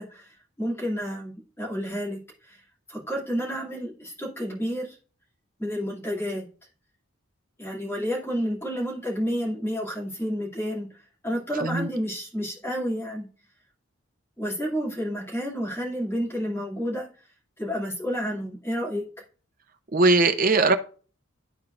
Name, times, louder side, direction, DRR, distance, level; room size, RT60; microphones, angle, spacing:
voice 1, 0.0-2.6 2.9-5.0 5.6-6.4 7.6-13.3 14.4-17.1 17.6-19.1, equal, 10° left, 2.5 m, -30 dB
voice 2, 19.9-20.8, right 3 dB, 40° right, 0.7 m, -20 dB
12.5 x 4.5 x 2.5 m
head